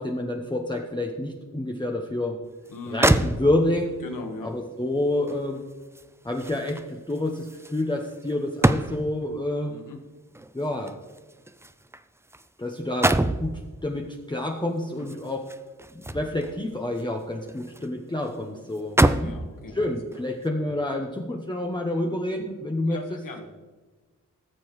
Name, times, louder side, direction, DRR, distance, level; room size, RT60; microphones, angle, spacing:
voice 1, 0.0-2.4 2.9-4.0 4.4-5.6 6.2-9.7 10.5-10.9 12.6-15.5 15.9-19.4 19.7-23.2, left 1 dB, 15° left, 1 dB, 0.9 m, -28 dB
voice 2, 2.7-3.0 4.0-4.5 9.7-10.0 19.2-19.7 22.0-22.1 22.8-23.5, left 3 dB, 80° left, 4 dB, 1.6 m, -38 dB
sound 1, 2.7-2.8 3.0-3.9 5.3-9.3 10.3-12.5 12.8-13.5 15.0-16.6 17.0-17.9 18.2-18.3 18.7-19.4 20.1-20.3, right 1 dB, 10° right, 0.4 m, -26 dB
16.5 x 6.9 x 3.2 m, 1.3 s
cardioid pair, 60°, 32 cm